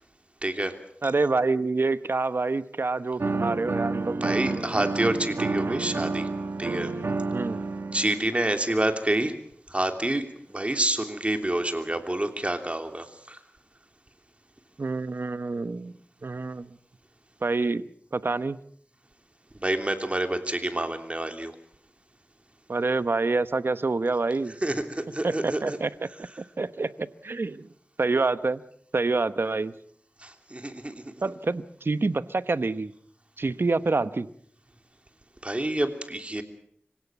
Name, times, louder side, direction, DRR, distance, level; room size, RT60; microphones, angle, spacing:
voice 1, 0.4-0.7 4.2-6.3 6.6-6.9 7.9-9.3 9.7-10.2 10.5-13.4 19.6-21.5 24.6-25.8 30.2-30.9 35.4-36.4, right 1 dB, 30° right, 6 dB, 3.0 m, -28 dB
voice 2, 1.0-4.3 7.3-7.6 14.8-15.9 16.2-16.7 17.4-17.8 18.1-18.6 22.7-24.5 25.2-26.3 26.6-27.7 28.0-28.6 28.9-29.7 31.2-32.9 33.4-34.3, right 3 dB, 65° right, 14 dB, 1.0 m, -27 dB
sound 1, 3.2-8.2, right 3 dB, 85° right, 1.6 m, -29 dB
25.0 x 17.0 x 7.2 m, 0.65 s
wide cardioid pair, 45°, 4 cm